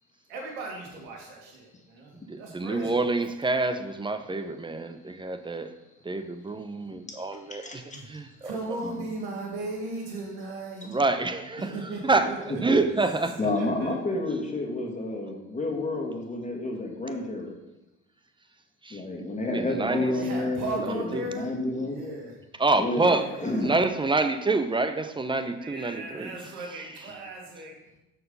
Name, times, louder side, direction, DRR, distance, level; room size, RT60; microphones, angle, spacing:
voice 1, 0.3-3.0 7.9-8.1 8.4-11.0 11.6-12.8 13.4-13.9 19.9-21.5 21.9-22.3 23.0-23.8 25.4-27.7, right 2 dB, 90° right, 0 dB, 1.9 m, -37 dB
voice 2, 2.1-5.7 6.0-8.6 10.8-12.3 12.6-13.4 18.8-20.1 20.8-21.2 22.6-26.4, right 3 dB, 15° right, 9 dB, 0.6 m, -27 dB
voice 3, 12.2-12.9 13.4-17.6 18.9-22.0 22.8-23.8, left 2 dB, 25° left, 1 dB, 1.9 m, -30 dB
6.2 x 4.7 x 5.5 m, 0.96 s
supercardioid pair, 75°, 30 cm